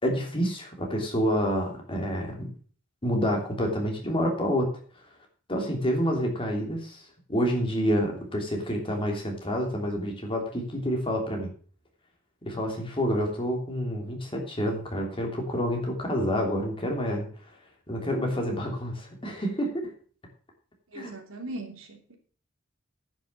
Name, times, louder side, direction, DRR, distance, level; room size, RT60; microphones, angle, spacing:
voice 1, 0.0-2.5 3.0-4.8 5.5-7.0 7.3-11.5 12.4-17.3 17.9-19.9 20.9-21.1, equal, 25° left, 1 dB, 3.0 m, -28 dB
voice 2, 20.9-22.2, right 1 dB, 90° right, 3 dB, 2.9 m, -39 dB
10.0 x 6.4 x 7.4 m, 0.43 s
head